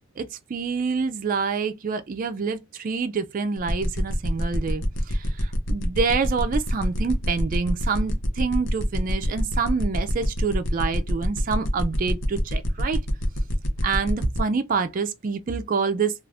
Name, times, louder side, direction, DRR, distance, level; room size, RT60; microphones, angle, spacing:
voice 1, 0.2-13.0 13.8-16.1, right 5 dB, 40° right, 0.3 m, -27 dB
sound 1, 3.6-14.4, equal, 55° left, 0.7 m, -27 dB
2.5 x 2.4 x 3.3 m
head